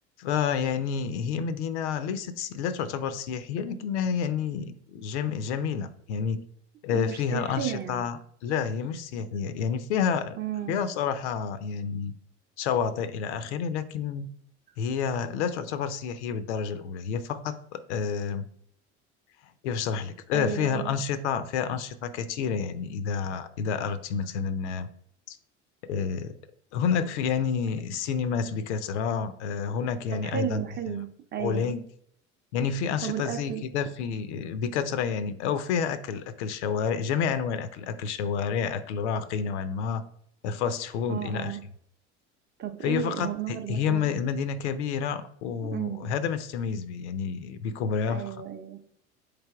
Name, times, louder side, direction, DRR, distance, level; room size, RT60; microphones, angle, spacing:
voice 1, 0.2-6.4 6.8-10.4 10.7-12.1 12.6-14.3 14.8-18.5 19.6-24.9 25.3-25.4 25.8-26.4 26.7-31.0 31.4-31.8 32.5-40.0 40.4-41.6 42.8-48.4, left 7 dB, 70° left, 13 dB, 0.5 m, -29 dB
voice 2, 6.9-8.1 10.4-10.8 20.3-21.0 30.1-31.7 33.0-33.6 41.1-41.6 42.6-44.1 45.6-46.1 48.1-48.8, right 9 dB, 30° right, 7 dB, 0.6 m, -33 dB
4.1 x 3.3 x 3.4 m, 0.66 s
hypercardioid pair, 75°, 35 cm